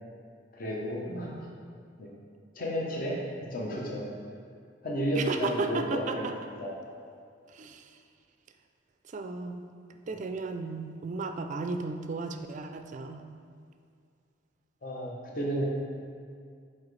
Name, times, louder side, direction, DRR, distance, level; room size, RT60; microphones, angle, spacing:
voice 1, 0.5-1.5 2.0-2.1 2.5-3.2 3.5-4.0 4.8-6.3 6.6-6.7 14.8-15.6, equal, 45° left, -3 dB, 0.9 m, -32 dB
voice 2, 1.0-1.5 5.2-6.5 7.5-8.0 9.0-9.6 10.1-13.2, right 3 dB, 40° right, 7 dB, 0.3 m, -35 dB
7.2 x 4.3 x 3.2 m, 2.3 s
head